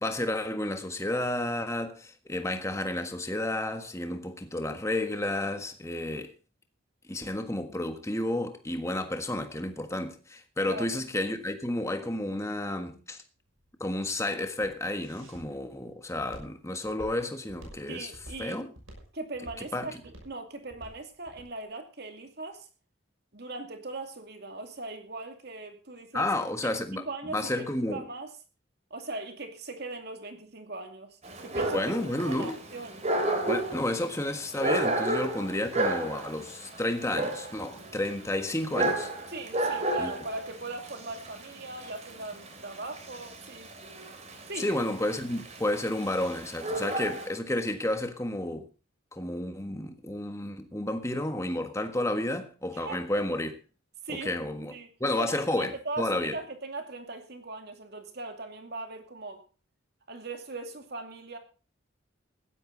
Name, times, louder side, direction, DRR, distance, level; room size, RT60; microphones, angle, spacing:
voice 1, 0.0-6.3 7.1-13.2 13.8-18.1 18.4-18.7 19.7-19.9 26.1-28.1 31.7-32.6 33.5-39.1 40.0-40.1 44.6-48.7 49.1-53.6 54.1-54.7 55.0-56.4, left 1 dB, 15° left, 1.5 m, -31 dB
voice 2, 10.6-11.0 17.9-18.7 19.1-22.7 23.3-26.3 26.6-28.3 28.9-31.9 32.3-33.1 39.3-43.7 44.5-44.8 52.7-53.0 54.0-54.3 54.7-54.9 55.2-59.4 60.1-61.4, right 2 dB, 55° right, 2.5 m, -40 dB
Walk footsteps, 13.4-21.5, right 1 dB, 80° right, 6.2 m, -49 dB
Dog, 31.2-47.3, right 1 dB, 35° right, 3.0 m, -32 dB
16.0 x 12.0 x 4.0 m
head